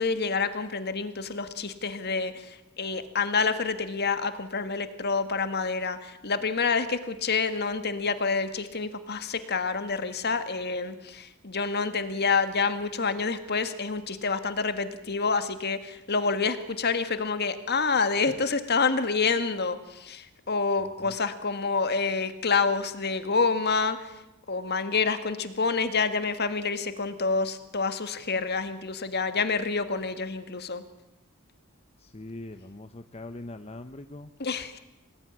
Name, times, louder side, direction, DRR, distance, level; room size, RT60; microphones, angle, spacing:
voice 1, 0.0-24.2 24.5-30.8 34.4-34.8, left 4 dB, 50° left, 10 dB, 1.8 m, -28 dB
voice 2, 32.1-34.3, left 2 dB, 30° left, 9 dB, 0.8 m, -41 dB
26.0 x 19.0 x 9.9 m, 0.98 s
head